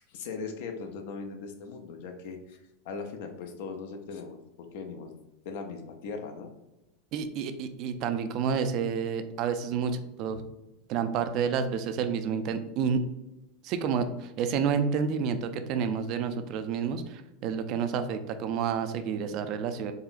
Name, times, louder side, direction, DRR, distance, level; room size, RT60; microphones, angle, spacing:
voice 1, 0.1-2.6 2.8-5.2 5.4-6.5, left 4 dB, 70° left, 6 dB, 0.5 m, -39 dB
voice 2, 7.1-10.4 10.9-13.0 13.6-19.9, right 6 dB, 55° right, 9 dB, 0.3 m, -29 dB
3.7 x 2.0 x 2.5 m, 0.94 s
supercardioid pair, 110°, 0 cm